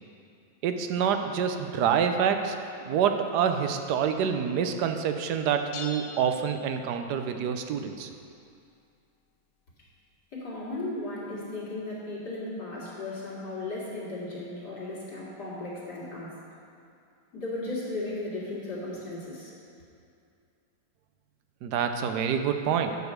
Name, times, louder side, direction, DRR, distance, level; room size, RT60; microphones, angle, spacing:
voice 1, 0.6-2.6 2.8-8.1 21.6-23.0, right 7 dB, 85° right, 7 dB, 1.2 m, -27 dB
sound 1, 5.7-7.3, left 4 dB, 70° left, 1.0 m, -43 dB
voice 2, 10.3-16.3 17.3-19.5, left 2 dB, 85° left, -8 dB, 2.9 m, -36 dB
9.6 x 4.8 x 6.6 m, 2.5 s
omnidirectional pair, 1.7 m